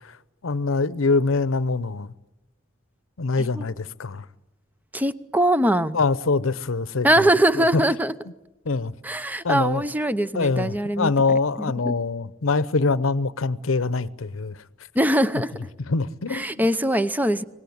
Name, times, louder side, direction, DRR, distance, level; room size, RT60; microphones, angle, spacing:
voice 1, 0.4-2.1 3.2-4.2 5.9-7.1 7.6-7.8 8.7-8.9 9.4-9.8 10.3-14.5 15.9-16.6, left 3 dB, 85° left, 0.8 m, -24 dB
voice 2, 4.9-6.0 7.0-8.1 9.0-11.1 11.6-12.0 14.9-15.5 16.3-17.4, right 1 dB, 10° right, 0.8 m, -22 dB
24.5 x 19.5 x 9.5 m
head